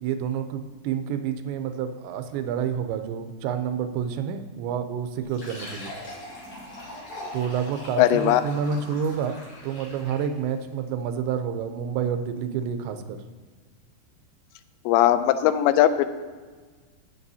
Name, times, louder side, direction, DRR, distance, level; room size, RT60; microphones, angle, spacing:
voice 1, 0.0-5.9 7.3-9.3 9.6-13.2, right 7 dB, 85° right, 8 dB, 2.9 m, -29 dB
Fill (with liquid), 5.2-10.4, left 1 dB, 45° left, 3.6 m, -41 dB
voice 2, 8.0-8.4 14.9-16.1, left 12 dB, 85° left, 11 dB, 2.8 m, -19 dB
15.5 x 7.5 x 2.8 m, 1.4 s
omnidirectional pair, 5.1 m